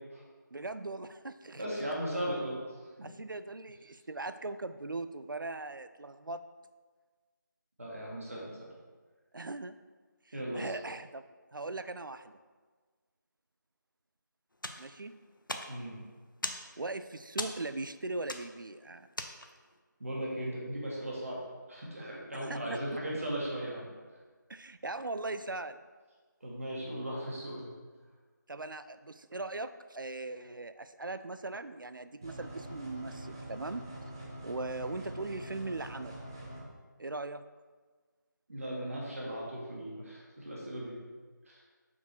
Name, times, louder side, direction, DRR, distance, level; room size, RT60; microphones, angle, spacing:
voice 1, 0.5-1.8 3.0-6.4 9.3-9.8 10.3-11.2 11.5-12.4 14.8-15.2 16.8-19.1 22.3-22.8 24.5-25.8 28.5-33.8 34.4-36.2 37.0-37.4, right 2 dB, 85° right, 12 dB, 0.4 m, -39 dB
voice 2, 1.5-2.6 7.8-8.7 10.3-10.7 15.7-16.0 20.0-21.4 21.7-23.9 26.4-27.7 38.5-41.0 41.5-41.6, right 1 dB, 45° right, -4 dB, 1.8 m, -37 dB
sound 1, 14.5-19.8, left 1 dB, 85° left, 0.7 m, -42 dB
sound 2, 32.2-36.6, right 1 dB, 10° right, 0.5 m, -45 dB
5.7 x 4.7 x 4.5 m, 1.4 s
figure-of-eight pair, 165°, 11 cm